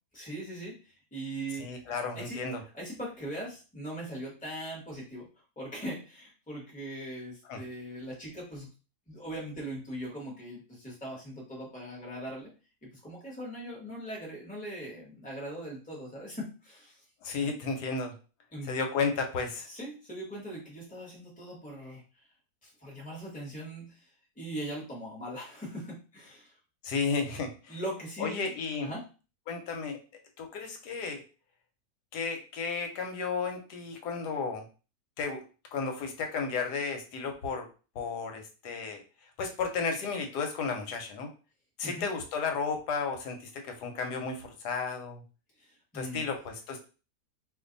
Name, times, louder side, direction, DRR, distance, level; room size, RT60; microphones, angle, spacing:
voice 1, 0.1-2.4 2.7-5.3 5.6-8.7 9.1-12.5 13.0-17.0 18.5-18.7 19.7-22.0 22.6-24.1 24.4-26.5 27.7-28.5 28.8-29.1 41.8-42.1 45.6-46.3, right 1 dB, 5° left, -3 dB, 1.0 m, -40 dB
voice 2, 1.6-2.6 7.5-7.6 17.2-18.1 18.6-19.7 26.8-27.8 28.2-28.9 29.5-30.0 30.4-31.2 32.1-34.6 35.2-35.4 35.7-37.7 37.9-39.0 39.4-41.3 41.8-45.2 45.9-46.9, left 5 dB, 85° left, 4 dB, 1.3 m, -33 dB
2.6 x 2.5 x 3.8 m, 0.34 s
omnidirectional pair, 1.7 m